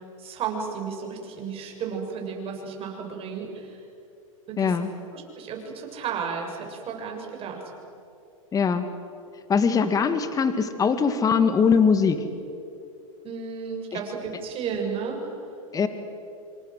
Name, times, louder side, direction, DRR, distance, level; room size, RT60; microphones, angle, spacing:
voice 1, 0.2-3.8 4.5-4.8 5.1-7.6 13.2-15.2, right 6 dB, 30° right, 1 dB, 7.3 m, -33 dB
voice 2, 4.6-4.9 8.5-8.9 9.5-12.2 13.9-14.0 15.7-15.9, left 6 dB, 20° left, 10 dB, 2.0 m, -21 dB
27.0 x 26.5 x 7.9 m, 2.7 s
hypercardioid pair, 120°, 18 cm